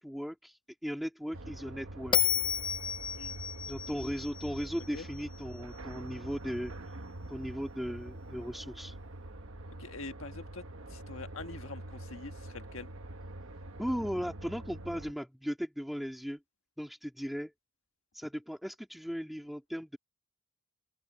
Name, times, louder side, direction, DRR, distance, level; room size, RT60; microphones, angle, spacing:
voice 1, 0.0-2.3 3.7-7.0 7.3-9.0 13.8-16.4 16.8-17.5 18.1-20.0, equal, ahead, 2.6 m, -37 dB
sound 1, 1.3-15.1, right 1 dB, 70° right, 1.3 m, -45 dB
Bell, 2.1-5.4, left 8 dB, 20° left, 0.6 m, -32 dB
voice 2, 9.8-10.6 10.9-12.9, left 3 dB, 70° left, 1.5 m, -44 dB
open air
head